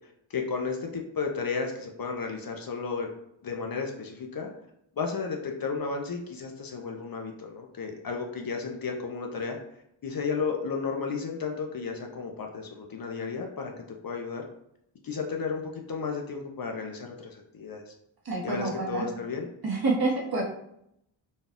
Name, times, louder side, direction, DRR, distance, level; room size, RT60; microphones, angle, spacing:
voice 1, 0.0-3.1 3.4-4.5 5.0-9.6 10.0-14.5 15.0-17.9 18.4-19.5, left 5 dB, 50° left, 2 dB, 0.6 m, -33 dB
voice 2, 18.2-19.0 19.6-20.4, right 3 dB, 50° right, -2 dB, 1.1 m, -27 dB
4.2 x 2.2 x 3.5 m, 0.76 s
wide cardioid pair, 120°, 48 cm